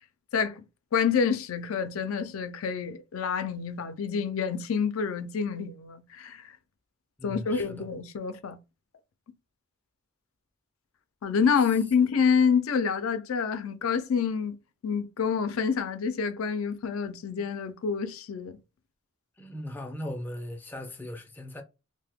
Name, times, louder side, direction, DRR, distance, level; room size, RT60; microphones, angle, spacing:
voice 1, 0.3-0.6 0.9-6.5 7.2-8.6 11.2-14.6 14.8-18.6, left 6 dB, 85° left, 0.4 m, -27 dB
voice 2, 7.2-7.9 12.0-12.1 19.4-21.6, left 1 dB, 10° left, 0.3 m, -38 dB
2.8 x 2.1 x 3.4 m
head